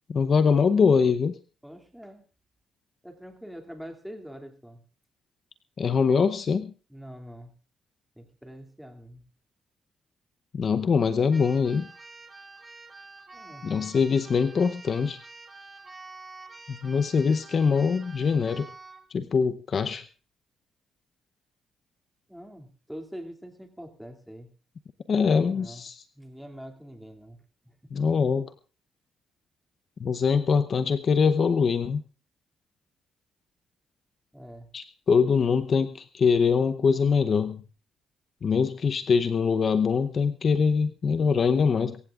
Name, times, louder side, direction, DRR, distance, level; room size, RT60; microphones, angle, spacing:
voice 1, 0.1-1.4 5.8-6.7 10.5-11.9 13.6-15.2 16.7-18.7 19.1-20.0 25.1-26.0 27.9-28.5 30.0-32.0 34.7-37.6 38.4-42.0, left 5 dB, 50° left, 9 dB, 0.8 m, -23 dB
voice 2, 1.6-2.2 3.0-4.8 6.9-7.5 8.1-9.2 13.3-13.7 22.3-24.5 25.3-25.8 26.1-27.4 27.6-27.9 34.3-34.7, equal, ahead, 3 dB, 2.6 m, -44 dB
Keyboard (musical), 11.3-19.1, right 3 dB, 25° right, 1.7 m, -47 dB
24.5 x 15.5 x 2.5 m, 0.35 s
cardioid pair, 90°, 0 cm